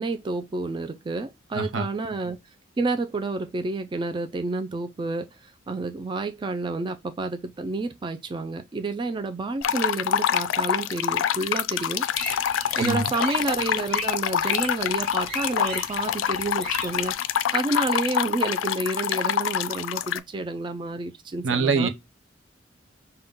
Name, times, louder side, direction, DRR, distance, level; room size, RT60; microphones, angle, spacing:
voice 1, 0.0-2.4 2.8-12.1 12.8-17.1 17.5-21.9, right 3 dB, 25° right, 0.3 m, -29 dB
voice 2, 1.5-1.9 12.8-13.1 21.4-21.9, right 4 dB, 80° right, 0.7 m, -24 dB
sound 1, 9.6-20.2, left 9 dB, 85° left, 0.3 m, -26 dB
sound 2, 12.1-17.1, equal, 5° left, 1.4 m, -37 dB
5.4 x 2.2 x 3.5 m
head